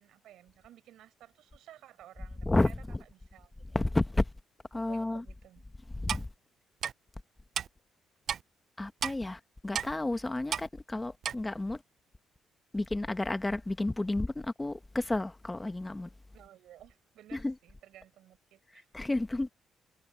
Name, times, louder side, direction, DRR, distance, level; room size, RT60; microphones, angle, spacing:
voice 1, 0.0-2.9 3.1-3.6 4.7-5.6 16.3-19.2, right 12 dB, 80° right, 5.6 m, -56 dB
voice 2, 2.4-3.0 3.7-4.3 4.7-5.2 5.9-6.3 8.8-11.8 12.7-16.1 17.3-17.5 18.9-19.5, left 2 dB, 15° left, 1.3 m, -31 dB
Clock, 6.1-6.3 6.8-6.9 7.6-7.7 8.3-8.4 9.0-9.2 9.7-9.9 10.5-10.7 11.2-11.4, right 8 dB, 60° right, 0.4 m, -32 dB
cardioid pair, 90°, 0 cm